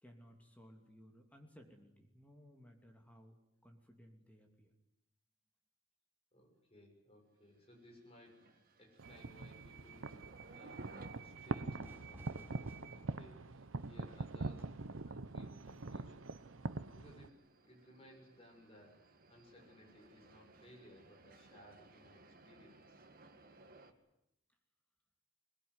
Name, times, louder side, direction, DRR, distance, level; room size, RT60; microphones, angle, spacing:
voice 1, 0.0-3.4 3.6-4.7, equal, 5° left, 3 dB, 2.9 m, -60 dB
voice 2, 6.3-10.9 11.2-16.3 16.9-23.0, left 1 dB, 30° left, 2 dB, 6.9 m, -61 dB
sound 1, 7.6-23.9, right 5 dB, 45° right, 2.1 m, -60 dB
sound 2, 9.0-17.3, right 3 dB, 70° right, 0.9 m, -44 dB
Fire / Fireworks, 11.8-17.3, equal, 10° right, 3.6 m, -61 dB
22.0 x 21.5 x 9.8 m, 0.81 s
head